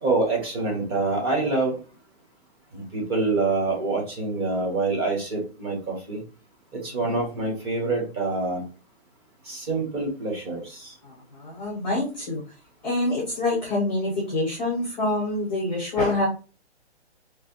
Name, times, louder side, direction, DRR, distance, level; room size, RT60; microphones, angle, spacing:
voice 1, 0.0-1.7 2.7-6.2 6.8-8.6 9.5-10.9, right 3 dB, 25° right, 0 dB, 0.9 m, -26 dB
voice 2, 11.0-12.4 12.8-16.3, left 2 dB, 5° left, -6 dB, 0.5 m, -26 dB
3.2 x 2.6 x 2.8 m, 0.34 s
hypercardioid pair, 165°, 33 cm